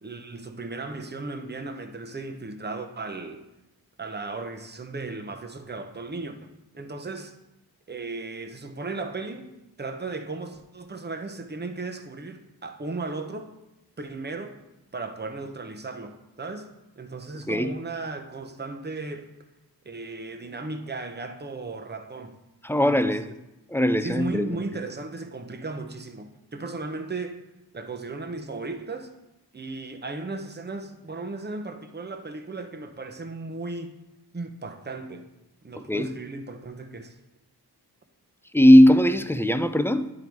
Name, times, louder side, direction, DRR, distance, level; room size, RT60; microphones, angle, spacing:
voice 1, 0.0-3.4 4.0-7.3 7.9-9.5 9.8-13.5 14.0-14.6 14.9-16.7 17.0-19.3 19.8-22.4 22.8-23.2 24.0-27.4 27.7-29.1 29.5-34.0 34.3-35.3 35.6-37.2, right 3 dB, 25° right, 0.8 m, -36 dB
voice 2, 22.6-23.3 23.7-24.6 35.9-36.1 38.5-40.1, equal, 5° left, 0.4 m, -19 dB
10.5 x 3.8 x 4.6 m
wide cardioid pair, 65°, 39 cm